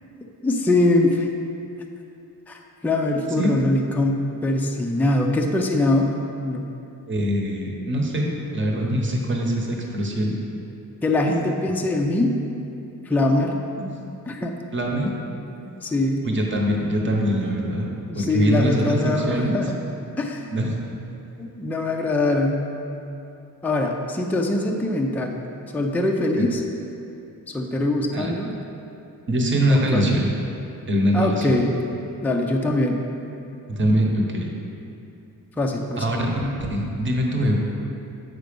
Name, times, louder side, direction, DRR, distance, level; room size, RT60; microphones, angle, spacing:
voice 1, 0.4-1.3 2.5-6.1 6.4-6.7 11.0-12.4 13.1-13.5 14.3-14.5 15.7-16.2 18.1-19.8 20.2-20.5 21.4-22.6 23.6-25.4 25.7-26.6 27.5-28.5 29.7-30.0 31.1-31.8 32.2-33.0 35.6-36.1, left 2 dB, 5° left, 1 dB, 0.4 m, -22 dB
voice 2, 7.0-10.4 13.8-13.9 14.7-15.1 16.2-17.9 18.2-19.7 20.5-20.7 26.3-26.5 28.1-28.3 29.3-30.3 30.9-31.5 33.7-34.5 36.0-37.5, equal, 35° right, 0 dB, 1.0 m, -23 dB
7.9 x 5.0 x 5.2 m, 2.7 s
wide cardioid pair, 155°, 35 cm